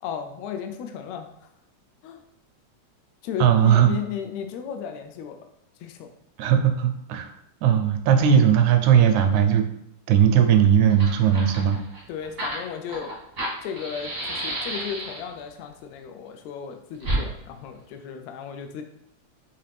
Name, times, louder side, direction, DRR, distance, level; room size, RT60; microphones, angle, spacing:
voice 1, 0.0-1.3 2.0-2.2 3.2-5.4 5.8-6.1 12.1-13.1 13.6-18.8, left 8 dB, 80° left, 5 dB, 1.7 m, -34 dB
voice 2, 3.4-4.0 6.4-7.3 7.6-9.7 10.1-11.8, right 9 dB, 80° right, 6 dB, 1.8 m, -18 dB
Fire, 10.8-15.4 17.0-17.2, right 1 dB, 50° right, 0.7 m, -31 dB
5.7 x 2.8 x 3.2 m, 0.76 s
omnidirectional pair, 3.3 m